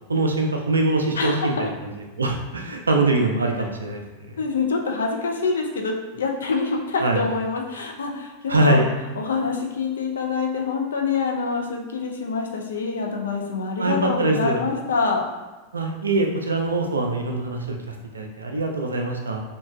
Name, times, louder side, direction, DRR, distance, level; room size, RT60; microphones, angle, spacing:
voice 1, 0.1-1.7 2.2-4.0 4.3-4.4 7.0-7.2 8.5-8.9 13.8-14.6 15.7-19.4, right 2 dB, 75° right, 2 dB, 0.3 m, -23 dB
voice 2, 1.1-1.7 4.4-8.8 9.2-15.2, left 4 dB, 65° left, 2 dB, 0.4 m, -26 dB
2.8 x 2.5 x 2.3 m, 1.2 s
figure-of-eight pair, 90°, 0 cm